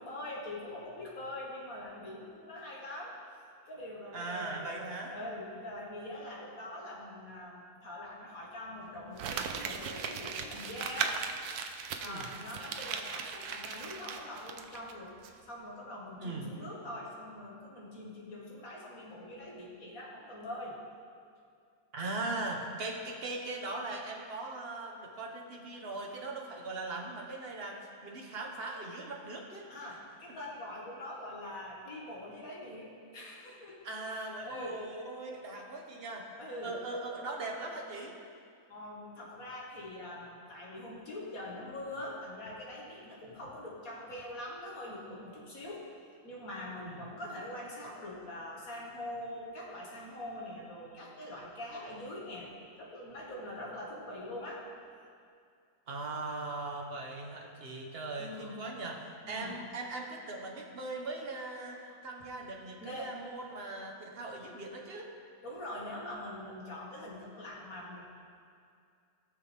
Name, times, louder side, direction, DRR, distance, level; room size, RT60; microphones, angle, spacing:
voice 1, 0.0-3.2 3.7-11.2 12.0-15.1 15.4-20.8 29.7-33.8 34.1-34.8 36.4-36.8 38.7-45.8 46.2-52.5 52.7-54.6 58.2-58.6 59.2-59.6 61.8-62.0 62.8-63.1 65.4-68.0, left 1 dB, 60° left, -4 dB, 2.4 m, -43 dB
voice 2, 4.1-5.2 12.0-12.2 16.2-16.5 21.9-29.7 33.8-36.3 36.6-38.1 46.8-47.0 55.9-65.1, right 2 dB, 40° right, 0 dB, 1.4 m, -40 dB
Crumpling crinkling, 9.2-14.9 15.2-15.3, right 6 dB, 75° right, 1.2 m, -38 dB
18.5 x 7.0 x 3.6 m, 2.3 s
omnidirectional pair, 1.7 m